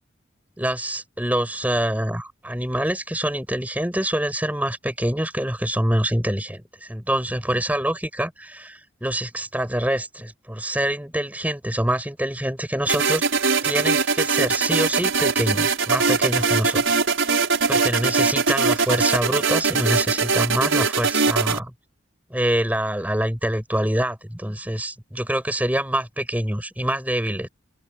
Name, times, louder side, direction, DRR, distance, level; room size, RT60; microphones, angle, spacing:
voice 1, 0.6-13.2 13.6-16.8 17.7-21.7 22.3-27.5, right 1 dB, 10° right, 5.5 m, -25 dB
sound 1, 12.9-21.6, right 4 dB, 85° right, 5.2 m, -21 dB
head